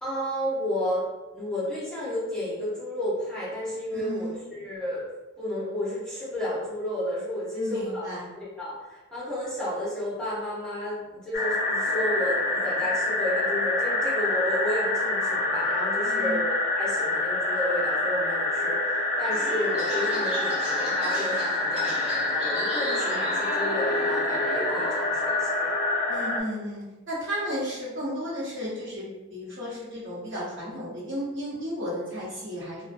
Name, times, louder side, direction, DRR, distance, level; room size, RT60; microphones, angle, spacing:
voice 1, 0.0-1.1 1.3-5.0 5.4-8.1 8.3-25.7, left 1 dB, 5° left, -10 dB, 0.7 m, -32 dB
voice 2, 3.9-4.4 7.6-8.3 16.0-16.4 26.1-32.9, equal, 65° right, -8 dB, 0.9 m, -34 dB
sound 1, 11.3-26.4, left 2 dB, 40° left, 0.3 m, -26 dB
sound 2, 19.3-25.0, right 1 dB, 30° right, 0.6 m, -36 dB
2.5 x 2.2 x 2.5 m, 1.2 s
head